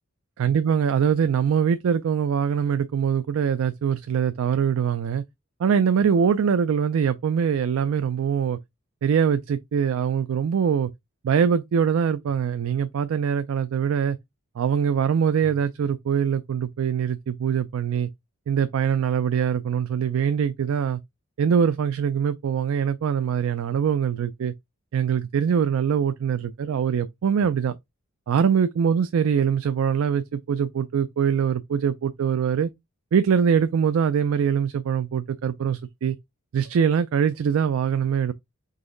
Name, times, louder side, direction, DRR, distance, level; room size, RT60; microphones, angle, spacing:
voice 1, 0.4-5.2 5.6-8.6 9.0-10.9 11.2-14.2 14.6-18.1 18.5-21.0 21.4-24.5 24.9-27.8 28.3-32.7 33.1-36.2 36.5-38.3, right 7 dB, 75° right, 0.3 m, -23 dB
4.0 x 2.9 x 3.7 m
head